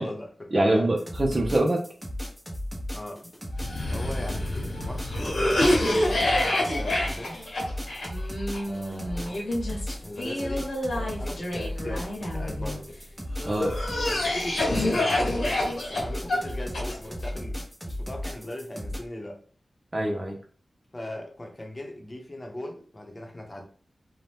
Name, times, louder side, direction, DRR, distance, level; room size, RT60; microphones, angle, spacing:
voice 1, 0.0-1.0 2.9-3.3 3.9-7.4 8.7-9.4 10.0-13.0 14.0-19.4 20.9-23.6, left 1 dB, 35° left, 0.8 m, -39 dB
voice 2, 0.5-1.8 13.4-13.7 19.9-20.4, right 1 dB, 40° right, 0.6 m, -24 dB
sound 1, 1.0-19.0, equal, 5° right, 0.9 m, -35 dB
Cough, 3.6-12.8 13.4-17.3, left 1 dB, 90° left, 0.9 m, -28 dB
2.7 x 2.1 x 3.3 m
cardioid pair, 50°, 0 cm